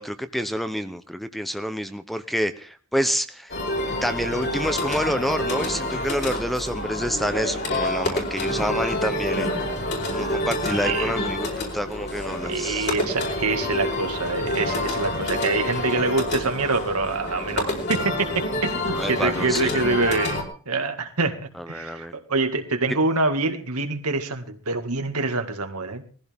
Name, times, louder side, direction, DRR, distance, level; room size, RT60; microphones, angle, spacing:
voice 1, 0.0-3.5 3.9-9.5 10.1-12.9 18.9-19.8 21.6-22.1, equal, ahead, 10 dB, 0.7 m, -28 dB
sound 1, 3.5-20.4, left 1 dB, 50° left, 4.7 m, -28 dB
voice 2, 10.7-11.1 12.4-26.0, right 3 dB, 80° right, 6 dB, 2.0 m, -26 dB
20.0 x 15.0 x 3.6 m, 0.40 s
head